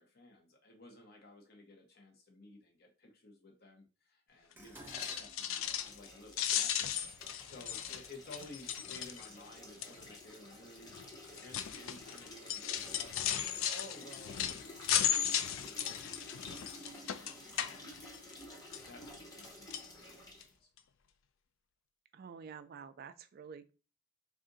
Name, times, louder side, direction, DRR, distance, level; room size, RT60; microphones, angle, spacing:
voice 1, 0.0-7.1 7.4-18.2 18.9-20.7, left 2 dB, 50° left, 0.8 m, -55 dB
Dishes pots and pans, 4.6-8.9 9.8-10.2 10.6-11.4 11.7-11.8, equal, 10° right, 0.6 m, -56 dB
sound 1, 4.8-6.1 6.3-9.5 9.8-10.2 10.9-18.4 18.7-19.4 19.7-19.9 20.4-20.5 20.8-20.9, left 10 dB, 75° left, 0.4 m, -36 dB
sound 2, 5.4-20.5, left 1 dB, 20° left, 0.8 m, -52 dB
voice 2, 22.1-23.7, right 6 dB, 50° right, 0.3 m, -49 dB
3.6 x 2.4 x 3.9 m
head